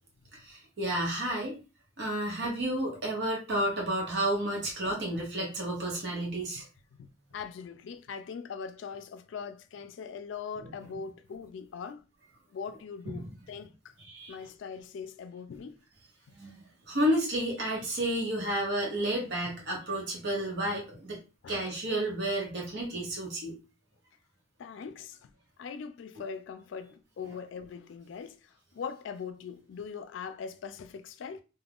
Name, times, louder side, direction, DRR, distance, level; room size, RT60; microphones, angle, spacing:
voice 1, 0.4-1.5 2.0-6.6 13.1-13.3 14.0-14.3 16.3-16.6 16.9-21.2 21.5-23.5, right 1 dB, 60° right, 0.9 m, -31 dB
voice 2, 4.9-5.3 6.6-6.7 6.9-12.0 12.5-13.9 14.3-15.8 16.3-16.4 21.4-21.7 24.6-25.3 25.6-31.4, left 6 dB, 65° left, 0.3 m, -41 dB
2.4 x 2.1 x 3.5 m
head